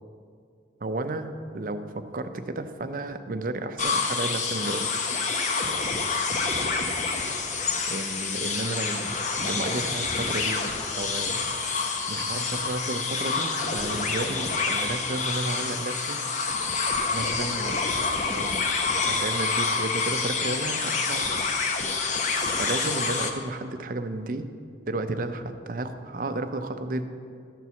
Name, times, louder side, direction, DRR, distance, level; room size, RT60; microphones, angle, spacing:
voice 1, 0.8-4.9 7.9-11.4 12.1-16.2 17.1-17.8 18.1-18.6 19.1-21.2 22.5-24.5 24.9-27.1, right 2 dB, 50° right, 8 dB, 0.5 m, -32 dB
sound 1, 3.8-23.3, left 4 dB, 40° left, 0.7 m, -27 dB
12.0 x 4.6 x 6.9 m, 2.3 s
head